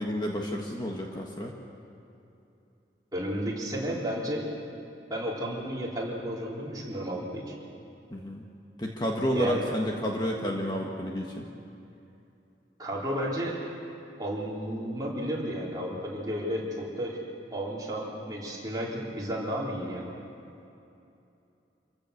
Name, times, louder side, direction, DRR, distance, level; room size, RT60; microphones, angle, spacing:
voice 1, 0.0-1.5 8.1-8.4 8.8-11.5, equal, 25° left, 0 dB, 1.5 m, -30 dB
voice 2, 3.1-4.5 5.1-7.5 9.3-9.6 12.8-13.6 14.2-17.2 17.5-20.1, equal, 20° right, -5 dB, 3.8 m, -32 dB
27.0 x 15.5 x 6.6 m, 2.8 s
head